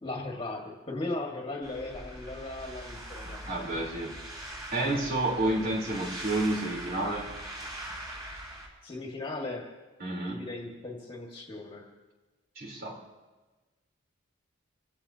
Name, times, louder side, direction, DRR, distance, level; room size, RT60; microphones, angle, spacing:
voice 1, 0.0-3.4 8.8-9.7 10.3-11.9, left 2 dB, 25° left, -1 dB, 1.9 m, -37 dB
sound 1, 1.6-8.7, right 1 dB, 20° right, 5.4 m, -42 dB
voice 2, 3.4-4.2 4.7-7.3 10.0-10.5 12.6-13.0, right 2 dB, 45° right, 0 dB, 3.8 m, -30 dB
26.5 x 16.0 x 2.9 m, 1.3 s
head